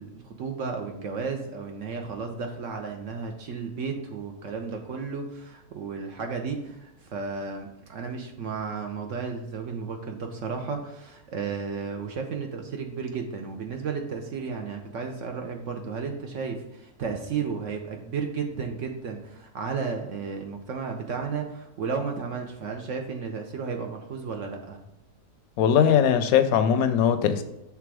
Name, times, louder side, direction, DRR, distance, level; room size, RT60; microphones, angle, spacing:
voice 1, 0.0-24.8, right 5 dB, 60° right, 3 dB, 0.9 m, -33 dB
voice 2, 25.6-27.4, left 8 dB, 70° left, 9 dB, 0.9 m, -20 dB
5.9 x 3.5 x 4.7 m, 0.87 s
omnidirectional pair, 1.7 m